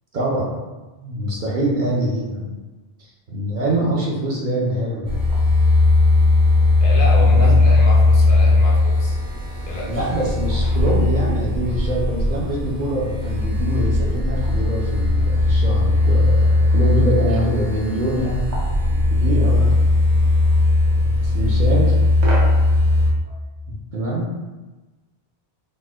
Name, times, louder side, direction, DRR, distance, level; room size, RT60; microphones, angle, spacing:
voice 1, 0.1-0.5 1.0-2.6 3.0-5.2 7.3-7.6 9.8-18.5 18.8-19.8 21.0-22.0 23.7-24.3, right 1 dB, 55° right, -4 dB, 0.6 m, -24 dB
sound 1, 5.0-23.1, left 2 dB, 85° right, 1.1 m, -17 dB
voice 2, 6.8-9.2 9.7-10.0, left 1 dB, 60° left, -3 dB, 0.7 m, -28 dB
4.1 x 2.0 x 2.2 m, 1.2 s
omnidirectional pair, 1.1 m